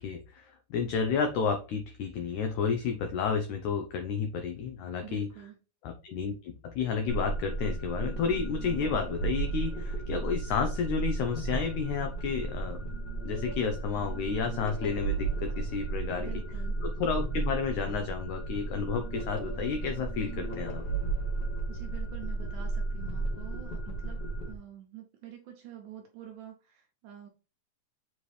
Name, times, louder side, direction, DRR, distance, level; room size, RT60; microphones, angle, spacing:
voice 1, 0.0-5.3 5.8-12.8 13.2-16.3 16.8-20.8, left 6 dB, 90° left, 5 dB, 1.7 m, -31 dB
voice 2, 5.0-5.6 16.2-16.8 21.7-24.2 24.5-27.3, right 11 dB, 75° right, 2 dB, 1.9 m, -47 dB
sound 1, 7.1-24.5, right 3 dB, 65° left, 0.9 m, -34 dB
7.4 x 4.2 x 3.3 m, 0.34 s
omnidirectional pair, 4.5 m